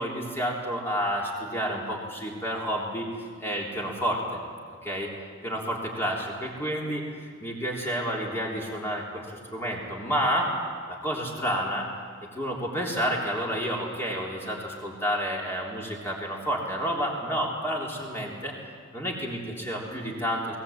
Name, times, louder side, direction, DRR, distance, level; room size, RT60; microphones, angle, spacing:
voice 1, 0.0-3.1 3.4-4.4 4.8-5.1 5.4-10.5 10.9-11.9 12.3-18.5 18.9-20.6, equal, 10° left, -2 dB, 3.4 m, -30 dB
19.5 x 18.5 x 8.7 m, 2.1 s
head